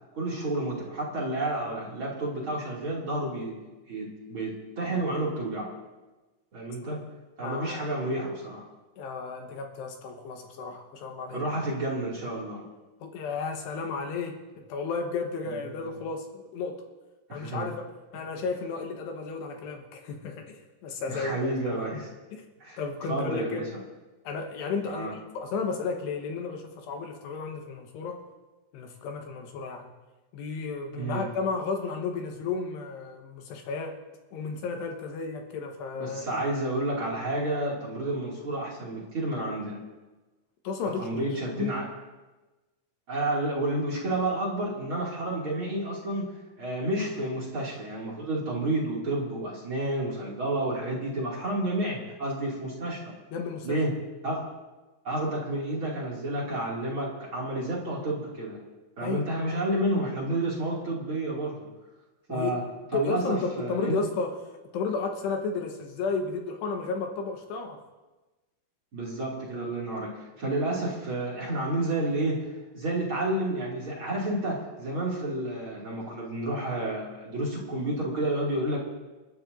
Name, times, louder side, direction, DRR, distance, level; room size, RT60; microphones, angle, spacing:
voice 1, 0.1-3.6 3.9-5.7 6.5-7.0 7.4-8.6 11.3-12.6 17.3-17.7 21.1-22.1 22.6-22.8 23.1-23.7 24.9-25.1 30.9-31.3 36.0-39.8 41.0-41.9 43.1-46.3 46.6-53.1 53.6-53.9 54.2-54.4 55.0-58.6 59.0-61.6 62.3-62.6 62.9-64.0 68.9-72.5 72.7-78.8, right 1 dB, 35° right, -4 dB, 2.5 m, -30 dB
voice 2, 7.4-7.8 9.0-11.4 13.0-16.7 17.3-17.8 18.1-22.0 22.3-22.5 22.8-23.7 24.2-28.2 28.7-29.9 30.3-34.0 34.3-36.5 40.6-41.1 41.6-41.7 53.3-53.8 59.0-59.3 62.3-62.6 62.9-64.3 64.7-67.8, left 4 dB, 70° left, 3 dB, 3.1 m, -33 dB
28.5 x 12.0 x 2.7 m, 1.2 s
omnidirectional pair, 5.4 m